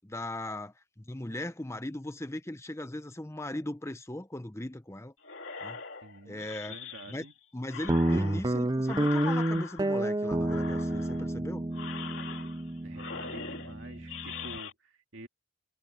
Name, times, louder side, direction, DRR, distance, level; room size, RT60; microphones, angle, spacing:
voice 1, 0.0-5.1 5.6-5.8 6.3-6.7 7.1-7.2 7.5-11.6, left 1 dB, 10° left, 0.8 m, -38 dB
sound 1, 5.2-7.3 7.7-10.1 10.4-11.3 11.7-12.7 12.9-14.7, left 6 dB, 55° left, 3.2 m, -42 dB
voice 2, 6.0-7.3 12.2-12.3 12.8-15.3, right 2 dB, 60° right, 2.4 m, -49 dB
Guitar, 7.9-14.6, right 1 dB, 20° right, 0.6 m, -30 dB
head